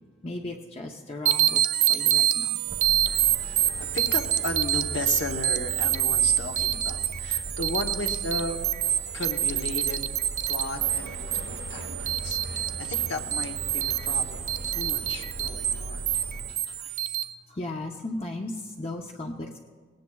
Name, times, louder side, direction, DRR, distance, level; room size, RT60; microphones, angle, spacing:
voice 1, 0.2-2.6 7.1-7.6 11.8-11.9 12.1-12.7 13.9-14.0 15.4-15.8 16.1-16.2 16.5-19.6, left 2 dB, 30° left, 1 dB, 0.6 m, -38 dB
sound 1, 1.3-17.2, right 11 dB, 35° right, 0.4 m, -27 dB
sound 2, 2.6-16.5, right 1 dB, 75° right, 1.0 m, -39 dB
voice 2, 3.4-8.6 9.1-10.0 10.4-16.0, left 2 dB, 70° left, 5 dB, 1.0 m, -35 dB
19.0 x 17.0 x 2.3 m, 1.5 s
head